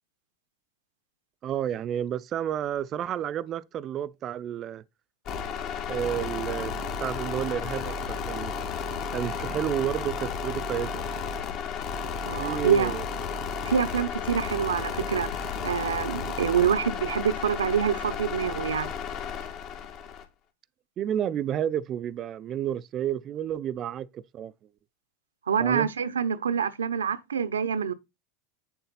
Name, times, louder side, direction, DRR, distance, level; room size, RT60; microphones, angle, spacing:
voice 1, 1.4-4.8 5.9-8.5 9.1-11.0 12.3-13.0 21.0-24.5 25.6-25.9, right 10 dB, 40° right, 0.6 m, -31 dB
sound 1, 5.3-20.2, left 6 dB, 50° left, 2.6 m, -33 dB
voice 2, 12.2-13.0 13.6-18.9 25.5-27.9, right 7 dB, 90° right, 0.8 m, -26 dB
8.9 x 7.0 x 4.1 m
hypercardioid pair, 95°, 0 cm